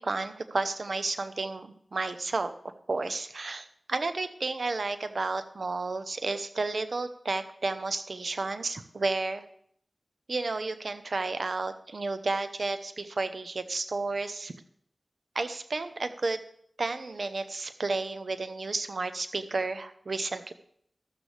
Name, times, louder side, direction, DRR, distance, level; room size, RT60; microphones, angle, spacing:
voice 1, 0.0-9.4 10.3-14.5 15.3-16.4 16.8-20.5, right 3 dB, 75° right, 10 dB, 0.8 m, -32 dB
13.0 x 12.5 x 3.4 m, 0.67 s
wide cardioid pair, 50°, 0 cm